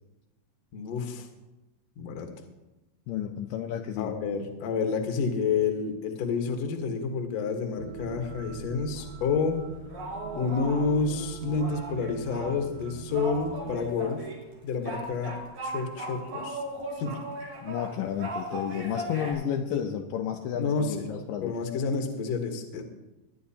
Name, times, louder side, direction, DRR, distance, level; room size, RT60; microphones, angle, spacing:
voice 1, 0.7-1.3 2.0-2.3 4.0-9.7 10.4-14.3 14.6-15.4 15.6-16.6 17.0-17.2 19.7-19.8 20.6-21.1 21.4-22.8, left 5 dB, 60° left, 4 dB, 2.0 m, -29 dB
voice 2, 3.1-4.1 17.6-21.6, left 9 dB, 80° left, 3 dB, 2.2 m, -32 dB
sound 1, 7.8-13.9, right 7 dB, 80° right, 2.6 m, -42 dB
sound 2, 9.0-9.4 9.9-12.5 12.8-12.9 13.1-14.4 14.8-19.3, right 1 dB, 50° right, 4.8 m, -37 dB
20.5 x 10.5 x 2.8 m, 1.0 s
omnidirectional pair, 4.4 m